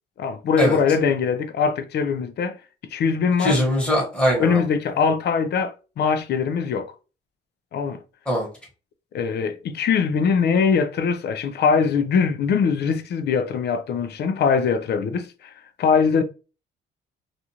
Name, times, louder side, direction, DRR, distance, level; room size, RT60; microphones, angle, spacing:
voice 1, 0.2-2.6 2.9-3.6 4.4-6.9 7.7-8.0 9.1-15.5 15.8-16.2, left 6 dB, 55° left, 0.5 m, -22 dB
voice 2, 3.4-4.6 8.3-8.5, equal, 5° left, 1.3 m, -21 dB
2.5 x 2.4 x 2.8 m
cardioid pair, 90°, 20 cm